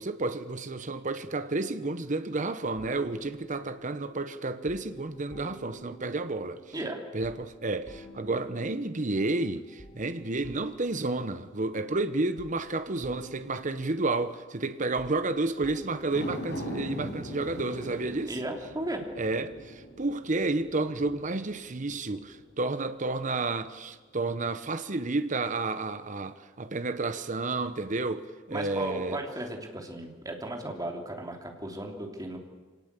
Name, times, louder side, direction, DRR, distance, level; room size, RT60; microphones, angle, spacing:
voice 1, 0.0-6.6 7.1-18.4 19.2-29.2, right 2 dB, 40° right, 1.0 m, -31 dB
sound 1, 2.8-16.4, equal, 25° left, 3.2 m, -51 dB
voice 2, 6.7-7.1 18.3-19.0 28.5-32.4, right 1 dB, 20° right, 3.2 m, -35 dB
sound 2, 16.0-22.5 22.9-23.0, equal, 65° left, 5.4 m, -41 dB
24.5 x 18.5 x 8.3 m
head